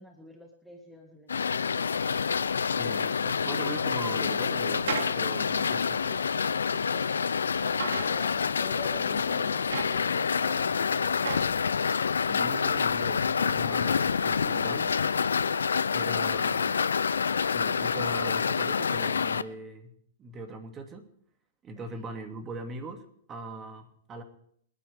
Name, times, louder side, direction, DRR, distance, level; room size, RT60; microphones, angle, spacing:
voice 1, 0.0-2.7 6.0-6.2 21.9-22.1, equal, ahead, 2 dB, 2.0 m, -48 dB
sound 1, 1.3-19.4, left 6 dB, 85° left, 0.6 m, -27 dB
voice 2, 2.7-6.0 12.3-15.0 15.9-16.8 17.5-19.9 20.2-21.1 21.6-24.2, right 2 dB, 25° right, 5 dB, 2.7 m, -40 dB
sound 2, 2.7-2.9 4.0-5.2 5.7-5.8 6.7-7.1 7.6-8.1 8.7-8.8 9.5-10.4 10.8-11.5 12.1-12.2, right 6 dB, 75° right, 2.7 m, -36 dB
27.0 x 10.0 x 3.7 m, 0.65 s
hypercardioid pair, 115°, 0 cm